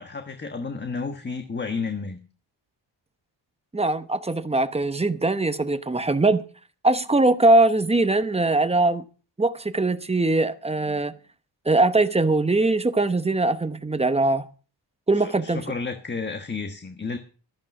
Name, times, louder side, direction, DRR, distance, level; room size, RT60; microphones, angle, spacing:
voice 1, 0.0-2.2 15.1-17.2, left 4 dB, 25° left, 1.4 m, -31 dB
voice 2, 3.7-6.4 6.8-9.0 9.4-11.2 11.7-14.5 15.1-15.7, right 2 dB, 15° right, 0.9 m, -21 dB
14.0 x 10.5 x 5.9 m
wide cardioid pair, 120°, 46 cm